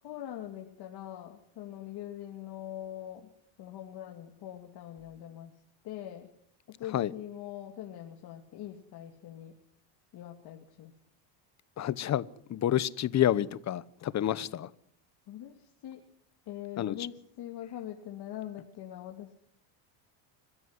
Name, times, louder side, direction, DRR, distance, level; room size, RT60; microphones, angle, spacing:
voice 1, 0.0-3.3 3.6-5.5 5.8-6.3 6.8-9.5 10.1-10.9 15.3-16.0 16.5-19.3, left 11 dB, 55° left, 2 dB, 2.7 m, -43 dB
voice 2, 11.8-12.2 12.5-14.7 16.8-17.0, left 11 dB, 35° left, 18 dB, 1.0 m, -28 dB
26.5 x 15.0 x 9.9 m, 0.70 s
cardioid pair, 145°, 47 cm